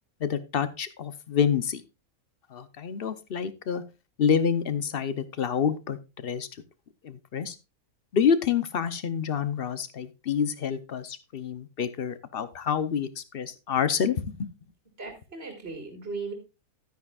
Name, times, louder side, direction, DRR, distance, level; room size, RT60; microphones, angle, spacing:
voice 1, 0.2-1.8 2.5-3.8 4.2-6.5 7.0-7.6 8.1-14.5, left 7 dB, 50° left, 14 dB, 0.8 m, -28 dB
voice 2, 15.0-16.3, right 4 dB, 45° right, 2 dB, 2.2 m, -37 dB
12.0 x 9.4 x 2.3 m, 0.27 s
omnidirectional pair, 1.6 m